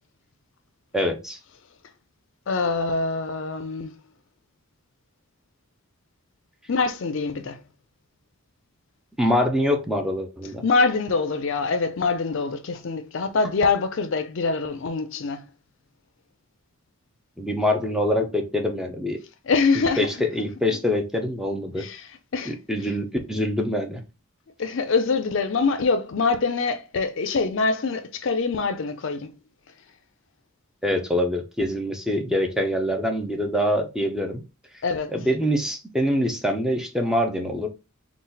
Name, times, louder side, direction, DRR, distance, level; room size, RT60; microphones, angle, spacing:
voice 1, 0.9-1.4 9.2-10.6 17.4-19.2 20.0-21.8 22.5-24.0 30.8-34.4 35.1-37.7, left 1 dB, 5° right, 0.5 m, -24 dB
voice 2, 2.5-3.9 6.7-7.6 10.6-15.4 19.4-20.1 21.8-22.6 24.6-29.3 34.8-35.1, left 4 dB, 60° left, 0.5 m, -24 dB
4.0 x 2.3 x 3.9 m
head